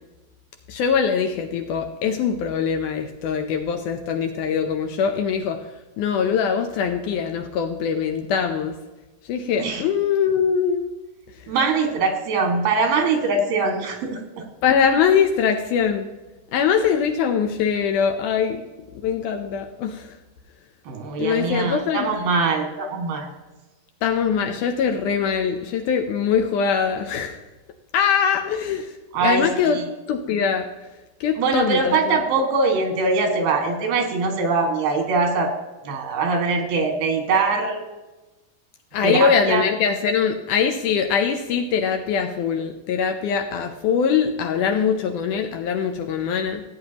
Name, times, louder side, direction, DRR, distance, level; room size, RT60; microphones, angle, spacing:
voice 1, 0.7-5.6 6.0-8.7 9.3-10.9 14.6-16.1 16.5-18.6 19.0-20.1 21.2-22.1 24.0-27.4 27.9-28.9 29.2-29.8 30.1-30.7 31.2-32.2 38.9-46.6, left 7 dB, 75° left, 5 dB, 1.9 m, -22 dB
voice 2, 11.5-14.2 20.9-23.3 29.1-29.9 31.4-35.5 35.9-37.8 39.0-39.7, right 4 dB, 90° right, 3 dB, 3.7 m, -22 dB
16.0 x 9.4 x 2.9 m, 1.1 s
omnidirectional pair, 4.2 m